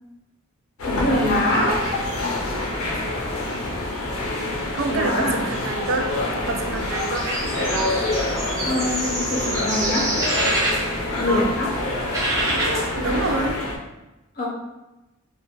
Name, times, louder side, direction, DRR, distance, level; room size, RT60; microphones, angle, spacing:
sound 1, 0.8-13.8, left 2 dB, 85° left, 0.5 m, -27 dB
voice 1, 0.8-1.9 4.9-5.4 8.6-10.2 11.1-11.8 14.4-14.5, left 1 dB, 45° left, -3 dB, 0.7 m, -24 dB
sound 2, 1.7-13.6, right 1 dB, 15° right, 0.6 m, -30 dB
voice 2, 4.7-6.1 6.5-7.3 11.3-11.5 12.9-13.6, right 3 dB, 65° right, 4 dB, 0.4 m, -26 dB
2.6 x 2.3 x 2.9 m, 1.0 s
head